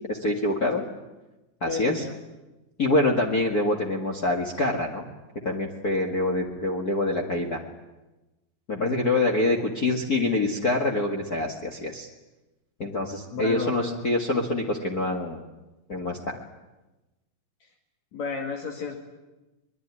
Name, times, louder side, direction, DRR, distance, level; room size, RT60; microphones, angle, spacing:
voice 1, 0.1-0.8 1.6-2.1 2.8-5.1 5.4-7.6 8.7-12.1 12.8-15.4 15.9-16.4, left 2 dB, 35° left, 2 dB, 2.0 m, -25 dB
voice 2, 1.7-2.2 8.7-9.3 13.3-14.0 18.1-19.0, left 4 dB, 65° left, 1 dB, 3.4 m, -33 dB
23.5 x 21.5 x 9.7 m, 1.1 s
omnidirectional pair, 3.4 m